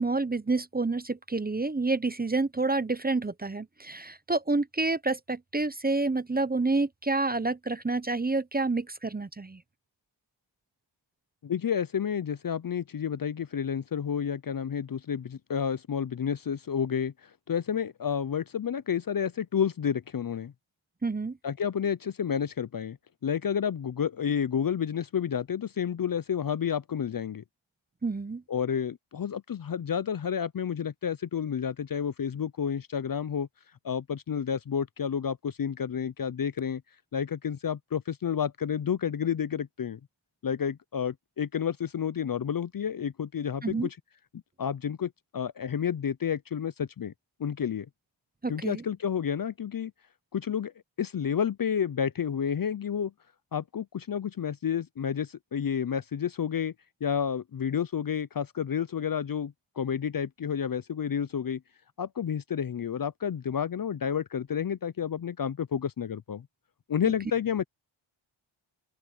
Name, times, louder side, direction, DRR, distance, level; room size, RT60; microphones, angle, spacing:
voice 1, 0.0-9.6 21.0-21.4 28.0-28.4 43.6-43.9 48.4-48.8, right 3 dB, 20° right, 0.7 m, -28 dB
voice 2, 11.4-20.5 21.4-23.0 23.2-27.4 28.5-33.5 33.8-36.8 37.1-40.0 40.4-44.0 44.6-47.1 47.4-47.9 48.5-49.9 50.3-50.7 51.0-53.1 53.5-56.7 57.0-61.6 62.0-66.5 66.9-67.6, left 8 dB, 45° left, 0.6 m, -30 dB
open air
cardioid pair, 70°, 50 cm